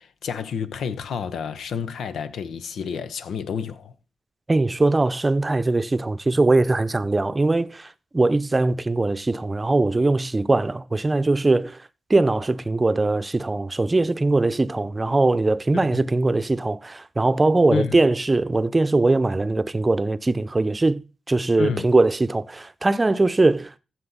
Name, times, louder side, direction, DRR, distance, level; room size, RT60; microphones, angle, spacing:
voice 1, 0.0-3.9 17.7-18.0 21.6-21.9, left 7 dB, 75° left, 0.8 m, -30 dB
voice 2, 4.5-11.8 12.1-23.7, right 2 dB, 30° right, 0.7 m, -21 dB
14.5 x 6.2 x 3.9 m
supercardioid pair, 45°, 0 cm